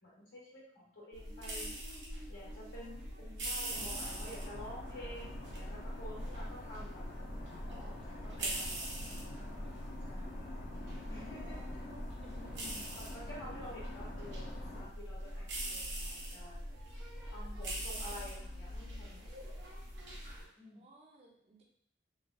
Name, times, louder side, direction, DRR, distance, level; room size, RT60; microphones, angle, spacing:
voice 1, 0.0-1.7 2.3-2.9 3.2-7.0 7.7-7.8 8.0-9.5 10.0-10.3 11.1-11.6 12.3-16.6 17.3-19.7 20.5-20.8, left 1 dB, 90° left, -9 dB, 1.4 m, -50 dB
sound 1, 1.1-20.4, right 1 dB, 70° right, 0.8 m, -42 dB
voice 2, 2.5-3.1 7.7-8.4 11.4-12.4 20.7-21.6, right 2 dB, 35° right, 0 dB, 0.5 m, -60 dB
sound 2, 3.7-14.9, left 2 dB, 50° left, 0.4 m, -48 dB
3.1 x 2.2 x 2.5 m, 0.68 s
head